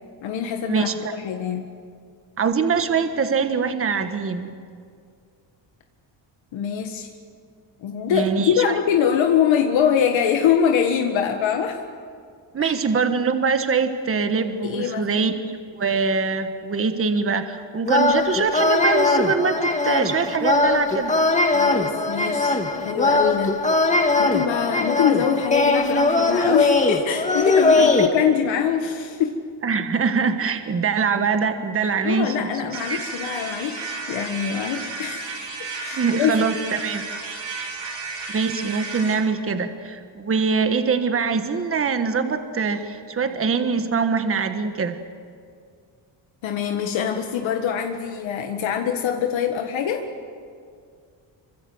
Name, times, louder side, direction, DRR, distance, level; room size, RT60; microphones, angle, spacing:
voice 1, 0.2-1.7 6.5-7.1 7.8-11.8 12.6-12.8 14.6-15.1 21.5-23.6 24.2-29.4 31.8-35.4 35.8-36.3 37.6-37.8 46.4-50.1, left 8 dB, 75° left, 3 dB, 1.8 m, -24 dB
voice 2, 2.4-4.5 8.1-8.7 12.5-15.3 15.7-21.1 27.7-27.9 29.6-32.5 32.9-33.0 35.9-37.0 38.3-45.0, right 5 dB, 30° right, 8 dB, 1.4 m, -23 dB
sound 1, 17.9-28.1, left 3 dB, 15° left, 2.0 m, -20 dB
sound 2, 32.7-39.2, right 4 dB, 75° right, 7.7 m, -33 dB
26.5 x 25.0 x 7.9 m, 2.2 s
cardioid pair, 150°, 46 cm